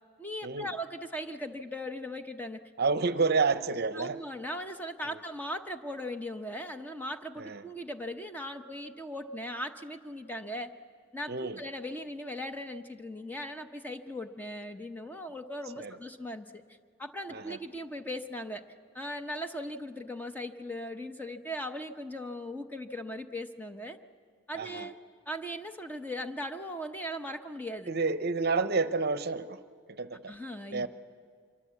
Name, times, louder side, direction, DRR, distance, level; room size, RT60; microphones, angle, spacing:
voice 1, 0.2-2.6 3.9-10.7 11.1-16.6 17.0-18.6 18.9-24.0 24.5-25.0 25.3-27.9 30.3-30.9, equal, 10° left, 7 dB, 0.8 m, -38 dB
voice 2, 2.8-4.2 7.4-7.6 11.3-11.6 15.8-15.9 17.3-17.6 24.6-24.8 27.9-29.6 30.0-30.3 30.7-30.9, right 4 dB, 50° right, 13 dB, 0.7 m, -29 dB
25.0 x 22.5 x 8.3 m, 2.1 s
head